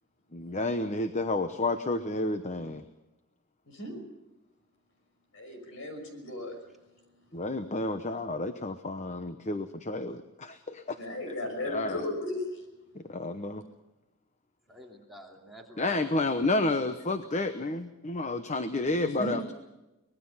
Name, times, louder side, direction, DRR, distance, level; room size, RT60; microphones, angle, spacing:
voice 1, 0.3-2.8 7.3-11.0 11.6-12.0 13.1-13.6 15.8-19.4, left 2 dB, 30° left, 9 dB, 0.9 m, -30 dB
voice 2, 3.7-4.0 5.3-6.6 11.0-12.6 19.0-19.4, left 1 dB, 65° left, 6 dB, 5.9 m, -35 dB
voice 3, 14.7-16.3, right 1 dB, ahead, -1 dB, 2.9 m, -49 dB
25.0 x 20.0 x 5.7 m, 1.0 s
head